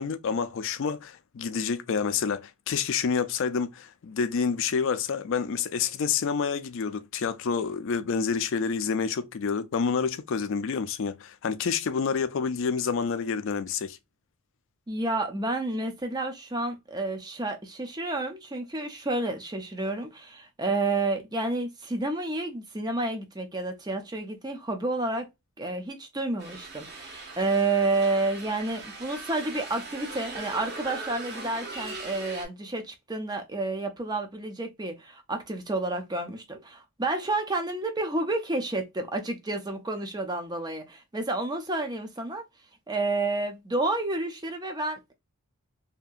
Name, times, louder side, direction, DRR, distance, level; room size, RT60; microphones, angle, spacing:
voice 1, 0.0-14.0, left 6 dB, 55° left, 0.4 m, -28 dB
voice 2, 14.9-25.3 25.6-42.5 42.9-45.1, right 2 dB, 20° right, 0.5 m, -30 dB
sound 1, 26.4-32.4, right 3 dB, 45° right, 1.0 m, -40 dB
2.8 x 2.6 x 2.3 m
head